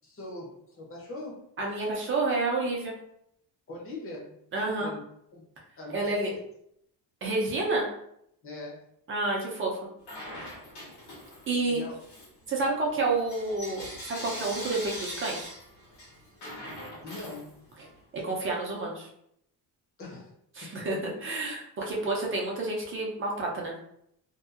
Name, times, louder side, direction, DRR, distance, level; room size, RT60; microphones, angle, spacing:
voice 1, 0.0-1.5 3.7-5.0 5.3-5.5 5.8-6.4 8.4-8.8 11.7-12.0 17.0-17.5 20.0-20.3 20.6-20.7 21.1-21.2, left 2 dB, 30° left, -3 dB, 0.7 m, -41 dB
voice 2, 1.6-2.9 4.5-4.9 5.9-6.3 7.2-7.9 9.1-9.8 11.5-11.8 12.5-15.5 18.2-19.1 20.6-23.7, right 3 dB, 30° right, -2 dB, 0.5 m, -29 dB
Bell / Coin (dropping), 10.0-11.6 12.0-17.9, equal, 75° left, 1.3 m, -42 dB
2.7 x 2.4 x 2.4 m, 0.73 s
cardioid pair, 170°, 41 cm